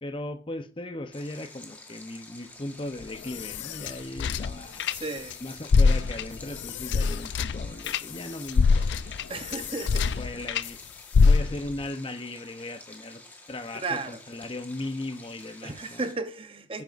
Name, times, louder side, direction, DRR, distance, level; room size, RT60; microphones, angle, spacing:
voice 1, 0.0-4.8 5.4-9.2 9.6-9.8 10.2-10.8 11.2-13.2 13.5-16.0 16.7-16.8, left 2 dB, 30° left, 0.7 m, -37 dB
Stream, 1.1-16.1, left 2 dB, 10° left, 1.3 m, -49 dB
sound 1, 3.0-5.3 5.6-10.7 11.1-11.8, left 4 dB, 70° left, 0.4 m, -25 dB
voice 2, 4.9-5.4 9.3-10.2 13.8-14.2 15.6-16.8, right 3 dB, 30° right, 0.7 m, -34 dB
11.0 x 9.2 x 2.5 m
head